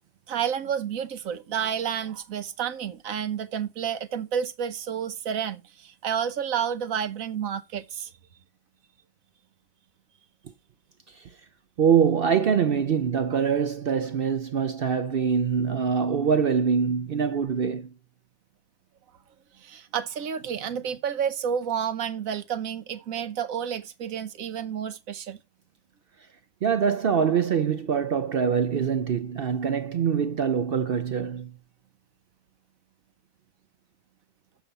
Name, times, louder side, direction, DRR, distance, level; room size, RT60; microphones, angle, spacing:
voice 1, 0.3-8.1 19.6-25.4, right 8 dB, 85° right, 1.3 m, -30 dB
voice 2, 11.8-17.9 26.6-31.5, right 7 dB, 55° right, 0.7 m, -24 dB
6.9 x 5.7 x 6.8 m
omnidirectional pair, 1.4 m